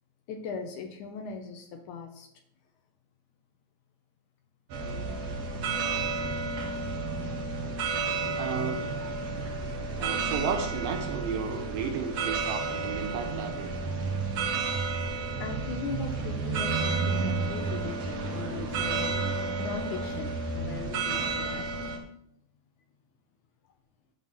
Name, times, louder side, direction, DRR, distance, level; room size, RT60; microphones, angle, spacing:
voice 1, 0.3-2.3 14.7-14.9 15.4-19.2 19.6-21.9, left 5 dB, 75° left, 4 dB, 1.9 m, -39 dB
sound 1, 4.7-22.0, right 4 dB, 60° right, 1.8 m, -31 dB
voice 2, 8.4-9.0 10.0-13.7, right 6 dB, 80° right, 6 dB, 2.2 m, -33 dB
9.3 x 3.8 x 6.2 m, 0.72 s
omnidirectional pair, 4.2 m